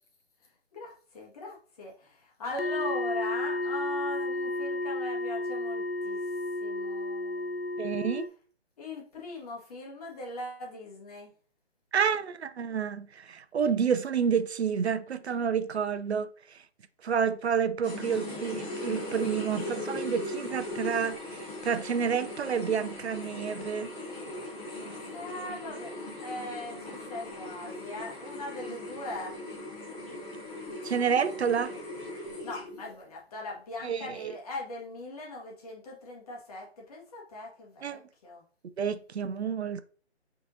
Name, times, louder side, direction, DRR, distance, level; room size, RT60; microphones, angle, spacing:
voice 1, 0.7-6.2 6.6-7.7 8.8-11.3 25.1-25.9 26.2-29.4 30.1-30.2 32.4-38.4, left 2 dB, 35° left, 1.5 m, -40 dB
sound 1, 2.6-8.3, left 2 dB, 60° left, 0.6 m, -32 dB
voice 2, 7.8-8.3 11.9-16.3 17.0-21.2 21.6-23.9 30.8-31.7 33.8-34.3 37.8-38.0 38.8-39.8, right 7 dB, 75° right, 0.5 m, -29 dB
sound 2, 17.8-32.9, left 1 dB, 10° left, 1.3 m, -39 dB
5.7 x 3.6 x 2.6 m
figure-of-eight pair, 145°, 33 cm